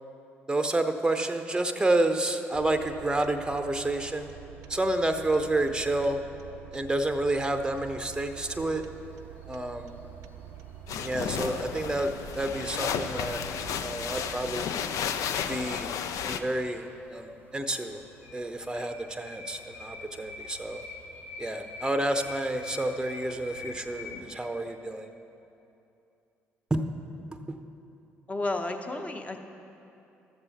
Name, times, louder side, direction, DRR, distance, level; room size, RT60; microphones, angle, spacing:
voice 1, 0.5-4.3 4.7-6.2 6.7-8.8 9.5-9.9 11.0-13.4 13.8-14.7 15.5-15.9 16.2-18.0 18.3-20.8 21.4-25.1 26.7-26.8 27.5-27.6, right 2 dB, 10° right, 8 dB, 0.7 m, -29 dB
sound 1, 2.5-14.5, right 11 dB, 70° right, 0.4 m, -47 dB
sound 2, 7.0-24.3, left 3 dB, 90° left, 0.9 m, -48 dB
sound 3, 10.9-16.4, left 7 dB, 60° left, 0.4 m, -33 dB
voice 2, 28.3-29.4, left 2 dB, 20° left, 5 dB, 1.0 m, -32 dB
13.0 x 7.1 x 4.1 m, 2.7 s
hypercardioid pair, 45°, 6 cm